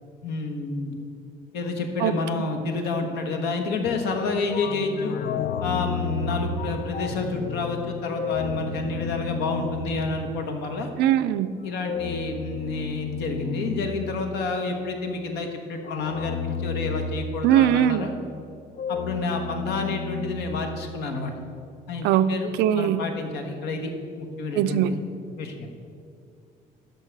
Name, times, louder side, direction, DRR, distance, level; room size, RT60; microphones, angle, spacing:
voice 1, 0.2-0.9 1.5-5.1 5.6-10.9 11.6-18.1 18.9-21.3 21.9-23.9 24.2-25.0 25.4-25.7, left 3 dB, 85° left, 4 dB, 1.2 m, -29 dB
voice 2, 2.0-2.5 11.0-11.5 17.4-18.1 22.0-22.3 22.6-23.0 24.5-24.9, right 11 dB, 80° right, 14 dB, 0.4 m, -21 dB
sound 1, 3.8-10.8 11.8-14.8 15.8-17.9 18.7-21.2, left 5 dB, 60° left, 0.5 m, -32 dB
12.5 x 5.5 x 4.6 m, 2.4 s
cardioid pair, 110°, 17 cm